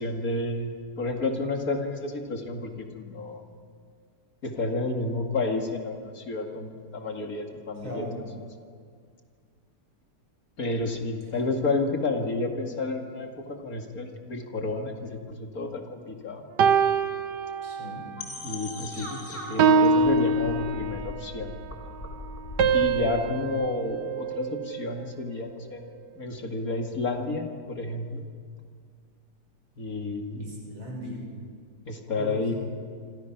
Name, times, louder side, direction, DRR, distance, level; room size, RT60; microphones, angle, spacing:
voice 1, 0.0-3.5 4.4-8.0 10.6-16.4 18.4-21.5 22.7-25.8 26.2-28.2 29.8-30.5 31.9-32.5, left 2 dB, 45° left, 3 dB, 2.5 m, -31 dB
voice 2, 7.8-8.2 17.6-18.0 30.4-31.2 32.2-32.5, equal, 90° right, -1 dB, 7.0 m, -38 dB
sound 1, 16.6-18.1 18.6-18.9 19.6-21.3 22.6-25.0, right 4 dB, 65° right, 1.5 m, -24 dB
sound 2, 18.2-23.1, left 1 dB, 30° left, 3.9 m, -39 dB
27.5 x 25.5 x 6.0 m, 2.1 s
omnidirectional pair, 2.1 m